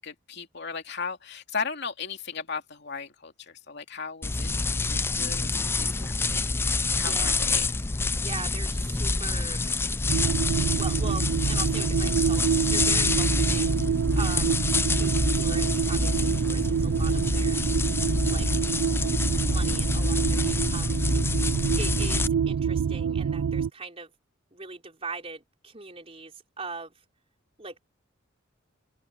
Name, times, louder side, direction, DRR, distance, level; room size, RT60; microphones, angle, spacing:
voice 1, 0.0-4.5 4.8-7.7, left 5 dB, 60° left, 2.6 m, -37 dB
sound 1, 4.2-22.3, left 3 dB, 10° left, 0.4 m, -27 dB
voice 2, 6.9-7.5 8.2-9.7 10.7-13.8 14.2-14.6 14.9-17.7 18.3-18.5 19.4-21.0 21.8-24.1 24.5-26.9 27.6-27.8, right 4 dB, 30° right, 4.2 m, -40 dB
sound 2, 10.1-23.7, right 7 dB, 85° right, 0.4 m, -27 dB
open air
head